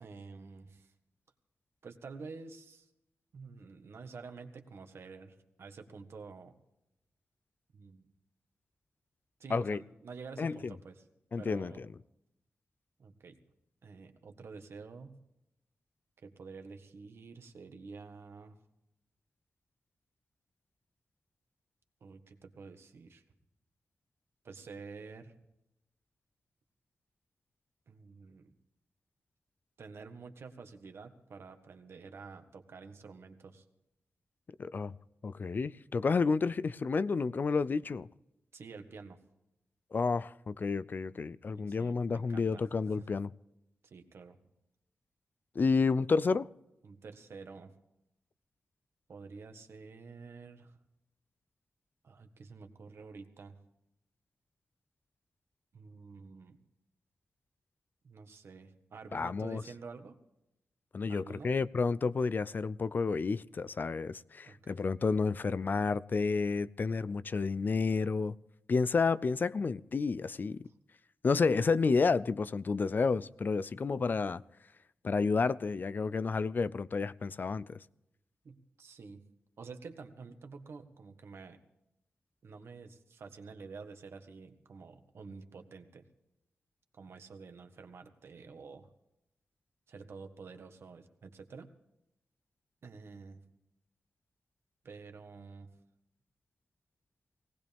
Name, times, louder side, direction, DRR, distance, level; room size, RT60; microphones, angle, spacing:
voice 1, 0.0-0.9 1.8-2.9 3.3-6.5 7.7-8.0 9.4-11.0 11.3-11.8 13.0-13.4 13.8-15.2 16.2-18.6 22.0-23.2 24.4-25.3 27.9-28.5 29.8-33.6 38.5-39.2 41.5-42.6 43.0-43.2 43.8-44.4 45.6-45.9 46.8-47.7 49.1-50.8 52.0-53.6 55.7-56.6 58.0-60.2 61.1-61.6 64.4-64.8 70.6-70.7 78.4-79.3 79.6-81.6 82.4-86.1 86.9-88.9 89.9-91.7 92.8-93.4 94.8-95.7, right 4 dB, 70° right, 1.6 m, -49 dB
voice 2, 10.4-10.7 11.3-11.9 34.6-34.9 35.2-38.1 39.9-43.3 45.6-46.5 59.1-59.6 60.9-68.3 68.7-70.6 71.2-74.4 75.0-77.8, left 4 dB, 45° left, 0.4 m, -30 dB
19.0 x 18.5 x 3.5 m
wide cardioid pair, 105°, 4 cm